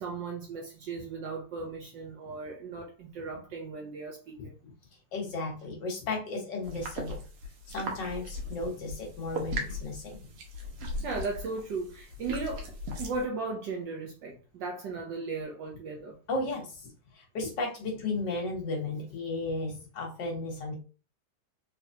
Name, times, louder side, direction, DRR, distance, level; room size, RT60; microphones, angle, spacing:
voice 1, 0.0-4.6 11.0-12.7 13.0-16.2, right 4 dB, 65° right, 1.2 m, -36 dB
voice 2, 5.1-7.2 7.7-10.2 16.3-16.9 17.1-20.8, left 2 dB, 60° left, 1.6 m, -34 dB
sound 1, 6.6-13.2, left 1 dB, 85° right, 1.9 m, -38 dB
3.8 x 3.4 x 2.7 m
omnidirectional pair, 2.4 m